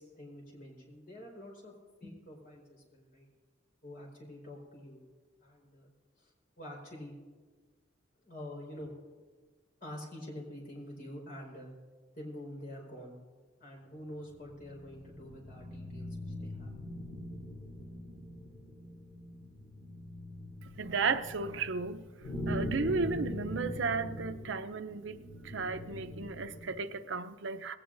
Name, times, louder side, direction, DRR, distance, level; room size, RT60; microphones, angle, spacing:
voice 1, 0.0-1.7 2.0-3.3 3.8-5.0 5.4-5.9 6.2-7.2 8.2-8.9 9.8-11.7 12.1-13.2 13.6-16.7, left 1 dB, 45° left, -2 dB, 4.4 m, -47 dB
sound 1, 14.2-26.8, equal, 70° left, 3.5 m, -42 dB
voice 2, 20.8-22.0 22.5-25.2 25.4-27.8, right 4 dB, 70° right, 9 dB, 0.6 m, -34 dB
20.0 x 17.5 x 2.6 m, 1.5 s
head